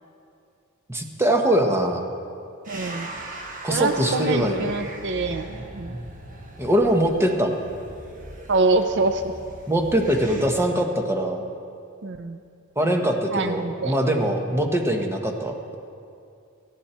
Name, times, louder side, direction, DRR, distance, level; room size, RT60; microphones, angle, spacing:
voice 1, 0.9-2.1 3.6-4.8 6.6-7.5 9.7-11.4 12.8-15.8, right 1 dB, 10° right, 3 dB, 1.3 m, -22 dB
sound 1, 2.7-10.5, right 1 dB, 40° right, 1.6 m, -39 dB
voice 2, 2.7-3.1 3.7-6.0 8.5-9.3 12.0-12.4 13.3-13.9, right 3 dB, 55° right, 8 dB, 0.6 m, -25 dB
18.5 x 15.0 x 4.4 m, 2.4 s
head